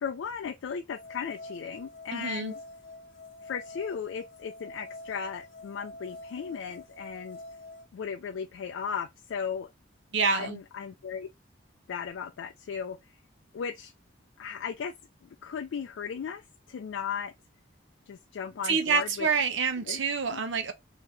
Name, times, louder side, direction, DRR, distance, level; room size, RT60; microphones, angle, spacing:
voice 1, 0.0-2.6 3.4-7.4 7.9-9.7 10.3-11.3 11.9-13.2 13.5-13.9 14.4-14.9 15.4-17.3 18.1-19.3 19.9-20.0 20.3-20.4, left 6 dB, 80° left, 0.3 m, -36 dB
sound 1, 0.9-7.8, left 2 dB, 60° left, 1.3 m, -46 dB
voice 2, 2.1-2.5 10.1-10.6 18.6-20.7, right 5 dB, 75° right, 0.8 m, -27 dB
3.6 x 2.8 x 3.3 m
head